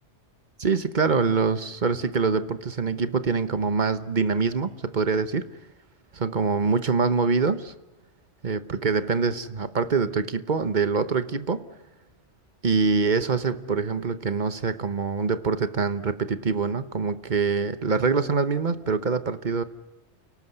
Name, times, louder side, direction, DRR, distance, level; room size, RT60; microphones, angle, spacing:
voice 1, 0.6-5.5 6.1-7.7 8.4-11.6 12.6-19.6, right 5 dB, 45° right, 1.1 m, -24 dB
29.5 x 18.5 x 7.9 m
omnidirectional pair, 1.2 m